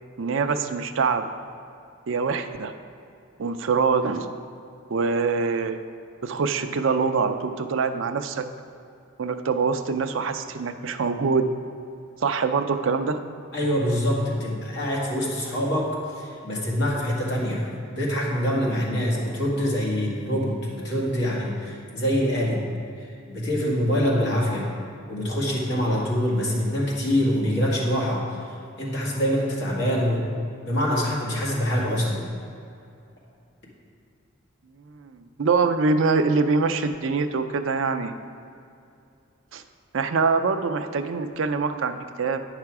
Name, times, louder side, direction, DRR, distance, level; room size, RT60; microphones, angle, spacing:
voice 1, 0.2-1.3 2.1-2.7 3.4-4.3 4.9-5.8 6.2-8.5 9.2-11.5 12.2-13.2 35.0-38.1 39.5-39.6 39.9-42.4, right 4 dB, 65° right, 8 dB, 0.5 m, -24 dB
voice 2, 13.5-17.6 17.9-22.6 23.0-24.7 25.1-30.2 30.6-32.2, equal, 55° left, -4 dB, 1.9 m, -25 dB
8.8 x 5.8 x 4.7 m, 2.5 s
head